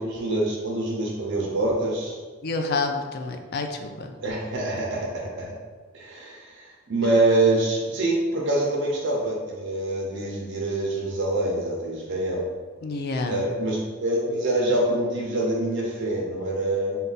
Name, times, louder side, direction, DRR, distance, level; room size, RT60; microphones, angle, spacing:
voice 1, 0.0-2.2 4.2-5.1 5.4-5.5 5.9-12.4 13.3-17.0, right 2 dB, 60° right, -3 dB, 0.6 m, -25 dB
voice 2, 2.4-4.1 12.8-13.4, left 3 dB, 50° left, 5 dB, 0.4 m, -28 dB
3.8 x 2.3 x 3.9 m, 1.5 s
head